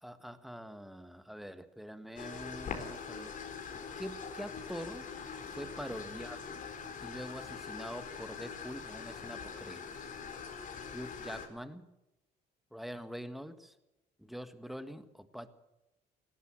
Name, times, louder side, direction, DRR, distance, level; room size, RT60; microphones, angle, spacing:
voice 1, 0.0-3.3 4.0-5.1 5.6-6.7 7.0-9.9 10.9-11.9 12.7-13.7 14.2-15.5, equal, ahead, 10 dB, 1.7 m, -44 dB
sound 1, 2.2-11.5, left 6 dB, 50° left, 4.2 m, -43 dB
19.5 x 17.0 x 7.8 m, 0.98 s
cardioid pair, 110°, 17 cm